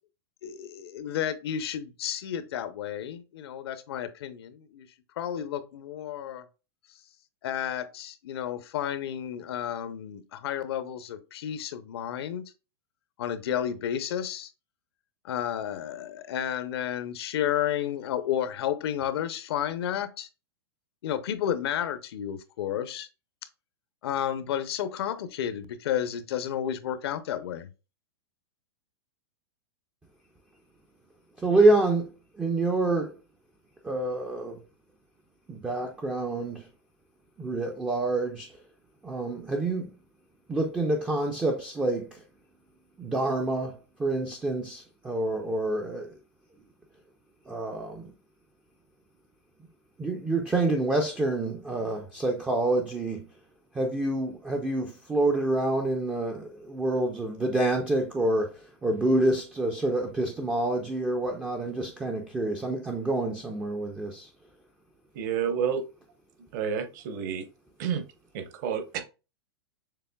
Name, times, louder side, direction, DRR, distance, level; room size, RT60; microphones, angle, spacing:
voice 1, 0.4-4.9 5.2-6.5 7.4-12.4 13.2-14.5 15.2-20.3 21.0-23.1 24.0-27.7, left 10 dB, 65° left, 0.6 m, -32 dB
voice 2, 31.4-33.2 33.8-34.6 35.5-36.7 37.4-38.5 39.0-39.9 40.5-42.2 43.0-46.1 47.5-48.1 50.0-53.3 53.7-64.3, right 2 dB, 5° right, 0.4 m, -27 dB
voice 3, 65.1-65.8 66.5-67.5 67.8-68.0 68.3-69.0, right 7 dB, 45° right, 0.8 m, -29 dB
6.7 x 3.2 x 2.2 m
supercardioid pair, 160°, 14 cm